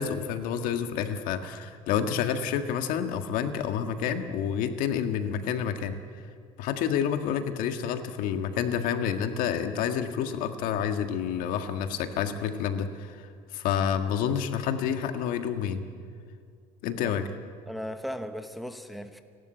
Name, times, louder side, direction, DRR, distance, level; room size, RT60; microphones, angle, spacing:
voice 1, 0.0-6.0 6.6-13.2 13.5-15.8 16.8-17.2, left 8 dB, 70° left, 7 dB, 1.6 m, -29 dB
voice 2, 17.7-19.2, equal, ahead, 8 dB, 1.0 m, -37 dB
29.5 x 12.5 x 9.0 m, 2.2 s
cardioid pair, 140°, 15 cm